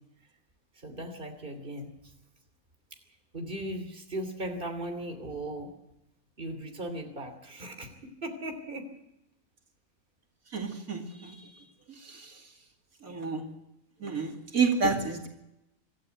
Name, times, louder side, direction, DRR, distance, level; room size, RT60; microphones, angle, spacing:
voice 1, 0.7-2.1 3.3-5.7 6.4-8.9, right 1 dB, 40° right, 5 dB, 3.1 m, -38 dB
voice 2, 10.5-12.5 13.0-13.5 14.0-15.3, right 4 dB, 90° right, 2 dB, 2.9 m, -31 dB
25.5 x 13.5 x 8.2 m, 0.88 s
omnidirectional pair, 1.4 m